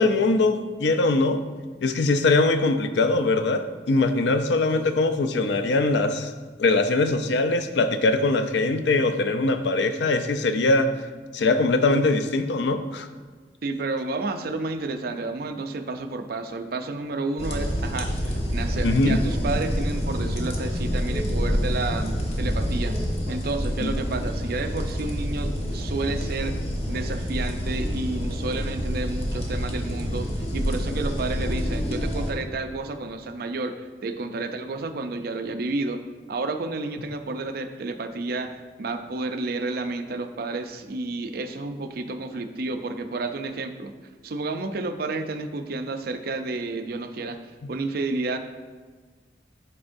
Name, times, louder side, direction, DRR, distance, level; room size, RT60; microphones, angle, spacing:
voice 1, 0.0-1.4 1.8-6.3 6.6-10.9 11.3-13.1 18.8-19.2 23.8-24.0, left 2 dB, 75° left, 9 dB, 0.5 m, -22 dB
voice 2, 13.6-26.6 26.9-36.0 36.3-43.9 44.2-47.4 47.7-48.4, right 3 dB, 60° right, 7 dB, 0.5 m, -31 dB
sound 1, 17.4-32.3, equal, 35° left, 1.0 m, -27 dB
11.0 x 4.4 x 2.6 m, 1.4 s
head